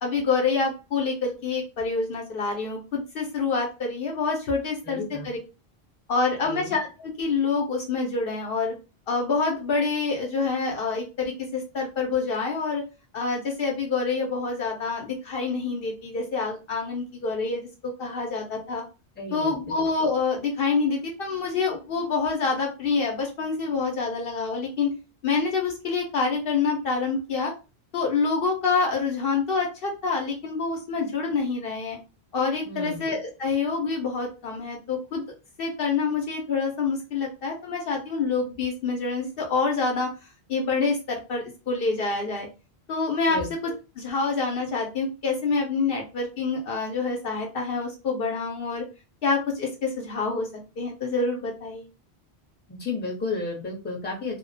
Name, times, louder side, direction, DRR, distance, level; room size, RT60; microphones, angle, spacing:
voice 1, 0.0-5.4 6.1-8.7 9.1-12.8 13.1-18.8 19.3-24.9 25.2-27.5 27.9-32.0 32.3-35.2 35.6-40.1 40.5-42.5 42.9-43.4 44.0-48.8 49.2-50.5 50.8-51.9, left 4 dB, 65° left, 0 dB, 0.8 m, -27 dB
voice 2, 4.8-5.3 6.4-6.7 19.2-19.8 32.7-33.1 43.3-43.8 52.7-54.4, left 3 dB, 10° left, -2 dB, 0.6 m, -33 dB
2.3 x 2.1 x 2.6 m, 0.30 s
omnidirectional pair, 1.1 m